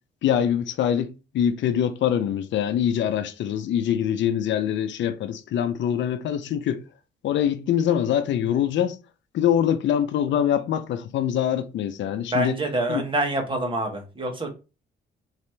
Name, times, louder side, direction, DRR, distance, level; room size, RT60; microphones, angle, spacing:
voice 1, 0.2-6.8 7.2-9.0 9.3-12.6 12.9-13.0, left 9 dB, 70° left, 0.5 m, -24 dB
voice 2, 12.2-14.5, right 1 dB, 25° right, 1.4 m, -26 dB
4.0 x 2.8 x 3.3 m
cardioid pair, 90°, 20 cm